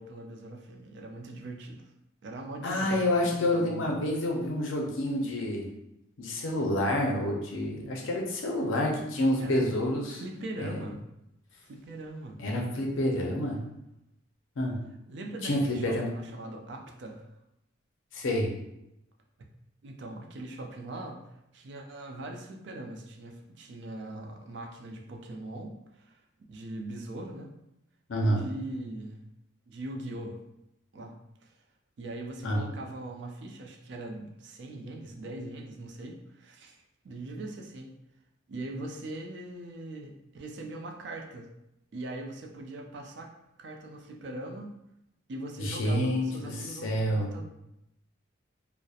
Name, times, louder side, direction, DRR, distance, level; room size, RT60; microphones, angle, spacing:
voice 1, 0.0-1.9 2.2-4.0 9.4-9.7 10.0-11.0 11.6-12.4 15.1-17.3 19.8-26.2 26.5-27.5 28.2-29.3 29.7-30.4 30.9-31.6 32.0-38.0 38.5-41.5 41.9-43.3 43.6-44.7 45.3-47.4, right 2 dB, 55° right, 2 dB, 0.3 m, -41 dB
voice 2, 2.6-5.7 6.2-10.2 10.6-10.8 12.4-13.6 14.6-14.8 15.4-16.1 18.1-18.5 28.1-28.4 32.4-32.6 45.6-46.6 46.8-47.3, left 1 dB, 70° left, 0 dB, 0.5 m, -28 dB
2.7 x 2.0 x 2.3 m, 0.85 s
head